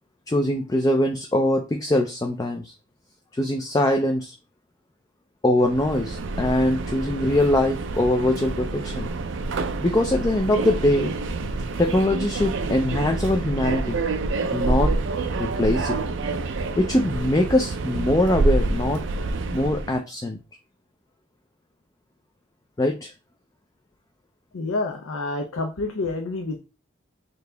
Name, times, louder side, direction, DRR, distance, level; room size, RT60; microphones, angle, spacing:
voice 1, 0.3-2.7 3.3-4.4 5.4-9.1 9.8-11.1 11.8-14.0 14.5-14.9 15.4-16.0 16.8-19.1 19.5-20.4 22.8-23.1, left 1 dB, 15° left, 3 dB, 0.3 m, -22 dB
Subway metro underground, 5.6-20.0, right 3 dB, 60° right, 0.4 m, -27 dB
voice 2, 24.5-26.6, left 2 dB, 85° left, 3 dB, 0.6 m, -28 dB
4.0 x 2.8 x 3.3 m, 0.30 s
head